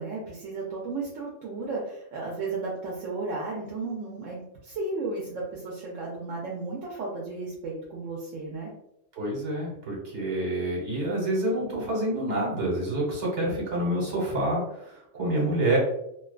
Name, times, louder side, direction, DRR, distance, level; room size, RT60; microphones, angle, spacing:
voice 1, 0.0-8.7 15.2-15.7, right 3 dB, 85° right, -4 dB, 0.9 m, -34 dB
voice 2, 9.1-15.8, right 1 dB, 65° right, -4 dB, 1.3 m, -27 dB
2.4 x 2.3 x 2.3 m, 0.78 s
omnidirectional pair, 1.3 m